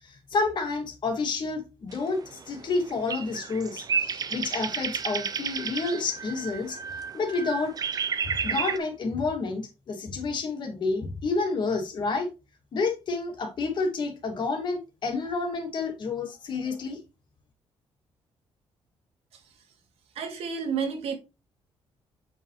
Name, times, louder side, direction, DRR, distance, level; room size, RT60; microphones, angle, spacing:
voice 1, 0.1-6.8 7.1-7.8 8.4-12.3 12.7-17.0, left 3 dB, 50° left, 2.6 m, -29 dB
sound 1, 1.9-8.8, right 6 dB, 40° right, 0.8 m, -32 dB
voice 2, 20.1-21.2, right 6 dB, 85° right, 2.4 m, -30 dB
8.1 x 5.5 x 3.3 m
cardioid pair, 140°, 10 cm